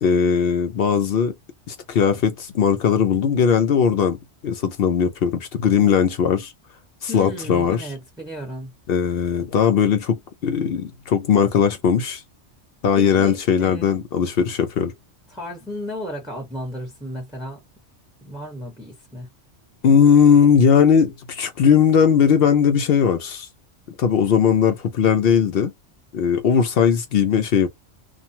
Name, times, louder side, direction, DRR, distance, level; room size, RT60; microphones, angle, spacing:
voice 1, 0.0-1.3 1.7-4.2 4.4-6.5 7.0-7.9 8.9-12.2 12.8-14.9 19.8-23.5 24.0-25.7 26.1-27.7, left 7 dB, 65° left, 0.7 m, -18 dB
voice 2, 7.1-8.7 12.9-14.0 15.3-17.6 18.2-19.3, equal, 5° right, 0.9 m, -34 dB
2.4 x 2.1 x 2.6 m
omnidirectional pair, 1.2 m